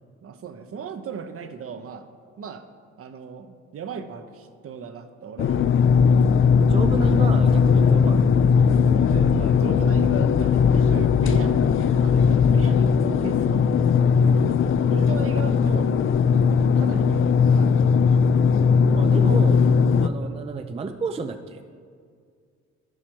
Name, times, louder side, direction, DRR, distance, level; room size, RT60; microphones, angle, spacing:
voice 1, 0.2-2.1 2.4-2.7 3.0-5.7 8.9-14.6 14.9-15.9 16.5-17.8 19.9-20.4, right 6 dB, 50° right, 9 dB, 0.7 m, -37 dB
sound 1, 5.4-20.1, left 6 dB, 45° left, 0.4 m, -18 dB
voice 2, 6.6-8.6 18.9-19.7 20.0-21.6, right 4 dB, 20° right, 9 dB, 0.4 m, -31 dB
11.0 x 5.9 x 4.5 m, 2.1 s
cardioid pair, 90°, 30 cm